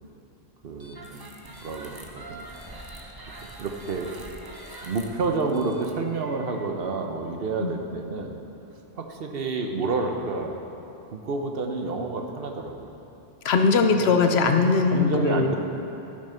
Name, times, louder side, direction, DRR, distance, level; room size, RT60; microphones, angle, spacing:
voice 1, 0.6-2.5 3.4-4.1 4.8-8.4 9.0-10.5 11.1-12.9 13.8-14.1 14.9-15.6, right 3 dB, 65° right, 3 dB, 1.1 m, -29 dB
sound 1, 0.8-6.7, right 2 dB, 25° right, 0.8 m, -44 dB
voice 2, 13.4-15.6, left 4 dB, 80° left, 6 dB, 1.0 m, -20 dB
12.5 x 6.6 x 5.6 m, 2.9 s
omnidirectional pair, 1.0 m